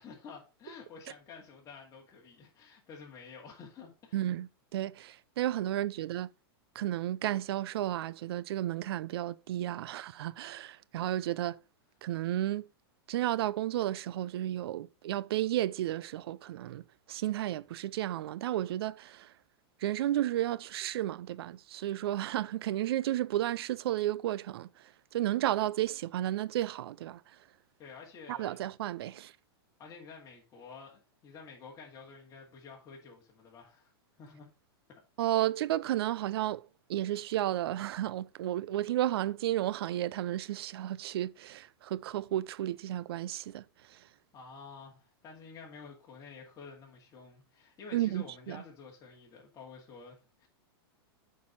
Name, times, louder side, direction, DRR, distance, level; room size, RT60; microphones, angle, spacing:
voice 1, 0.0-4.2 27.8-28.6 29.8-33.9 34.2-34.5 44.3-50.5, left 5 dB, 25° left, 2.3 m, -50 dB
voice 2, 4.1-6.3 6.8-11.6 12.0-12.7 13.1-16.8 17.1-19.3 19.8-24.7 25.1-27.2 28.3-29.3 35.2-44.0 47.9-48.6, right 13 dB, 75° right, 0.5 m, -32 dB
7.3 x 4.7 x 5.2 m
hypercardioid pair, 130°, 13 cm